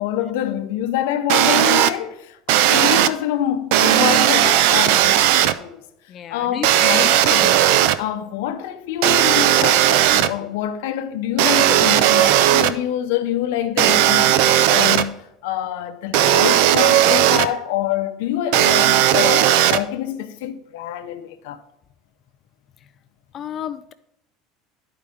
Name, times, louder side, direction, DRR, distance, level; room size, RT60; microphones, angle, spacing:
voice 1, 0.0-2.4 2.7-5.8 6.3-7.6 8.0-21.6, left 11 dB, 85° left, 0.7 m, -26 dB
sound 1, 1.3-1.9 2.5-3.1 3.7-5.5 6.6-8.0 9.0-10.3 11.4-12.7 13.8-15.0 16.1-17.5 18.5-19.8, right 12 dB, 65° right, 0.4 m, -16 dB
voice 2, 6.1-6.7 23.3-23.9, left 10 dB, 35° left, 0.3 m, -32 dB
12.0 x 4.8 x 3.5 m
cardioid pair, 160°, 0 cm